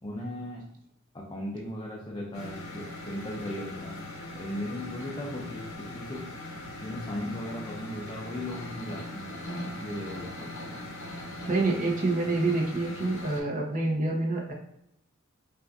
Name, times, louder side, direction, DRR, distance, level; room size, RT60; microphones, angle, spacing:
voice 1, 0.0-0.7 1.1-4.1 4.3-6.3 6.8-9.3 9.6-10.8, left 1 dB, 20° left, -2 dB, 0.5 m, -37 dB
sound 1, 2.3-13.4, left 1 dB, 70° left, 1.0 m, -40 dB
voice 2, 11.5-14.5, right 2 dB, 40° right, 0 dB, 0.9 m, -27 dB
5.5 x 2.5 x 2.6 m, 0.84 s
head